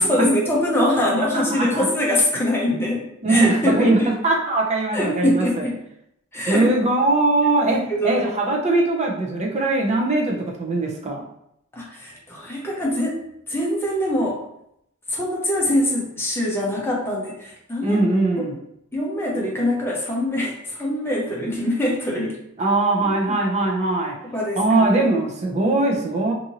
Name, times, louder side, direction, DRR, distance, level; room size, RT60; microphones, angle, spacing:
voice 1, 0.0-4.1 4.9-5.8 6.3-6.7 7.7-8.3 11.7-13.2 13.5-14.4 15.1-18.0 18.4-18.5 18.9-22.4 24.2-25.1, left 1 dB, 10° left, -4 dB, 0.6 m, -23 dB
voice 2, 1.2-1.8 3.2-5.5 6.5-11.2 17.8-18.6 22.6-24.1 24.6-26.3, right 2 dB, 35° right, 0 dB, 0.5 m, -21 dB
2.6 x 2.5 x 2.8 m, 0.77 s
head